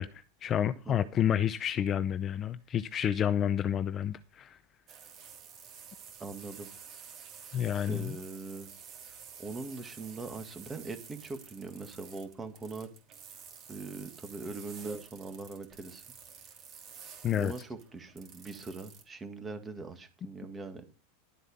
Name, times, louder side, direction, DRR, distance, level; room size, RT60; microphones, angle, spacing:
voice 1, 0.0-4.6 7.5-8.2 17.2-17.5, left 9 dB, 25° left, 13 dB, 0.6 m, -30 dB
sound 1, 4.9-19.0, right 7 dB, 30° right, 3.0 m, -51 dB
voice 2, 6.2-6.7 7.9-8.7 9.1-12.9 13.7-16.0 17.4-21.0, right 3 dB, 15° right, 8 dB, 1.9 m, -41 dB
12.0 x 7.9 x 5.6 m, 0.32 s
supercardioid pair, 155°, 0 cm